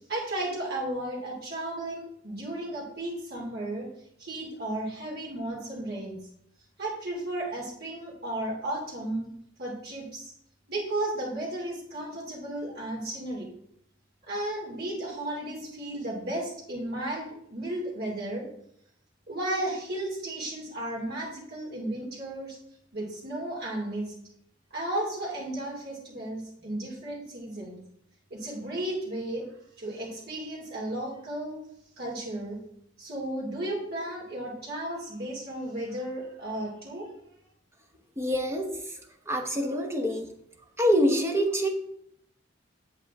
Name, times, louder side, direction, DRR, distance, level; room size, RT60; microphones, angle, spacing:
voice 1, 0.1-3.9 4.2-6.2 6.8-9.3 9.6-10.3 10.7-13.5 14.2-18.5 19.3-22.6 22.9-24.1 24.7-27.7 28.3-29.5 29.8-31.6 32.0-32.6 33.0-37.1, right 1 dB, 55° right, -3 dB, 2.7 m, -34 dB
voice 2, 38.2-39.0 39.3-40.3 40.8-41.7, equal, 15° right, 4 dB, 1.0 m, -26 dB
8.1 x 7.7 x 3.6 m, 0.70 s
head